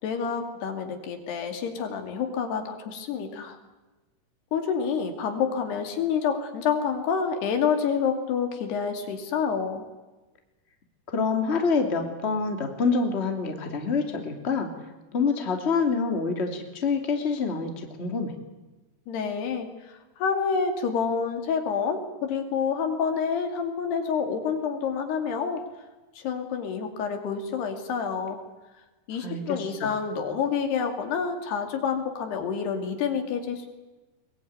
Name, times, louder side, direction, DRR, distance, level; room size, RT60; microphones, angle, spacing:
voice 1, 0.0-3.6 4.5-9.8 19.1-25.6 26.2-28.4 29.1-33.7, left 6 dB, 90° left, 5 dB, 4.6 m, -28 dB
voice 2, 11.1-14.7 15.1-18.3 29.2-29.9, left 4 dB, 20° left, 4 dB, 2.3 m, -26 dB
22.5 x 21.5 x 9.5 m, 1.1 s
omnidirectional pair, 4.5 m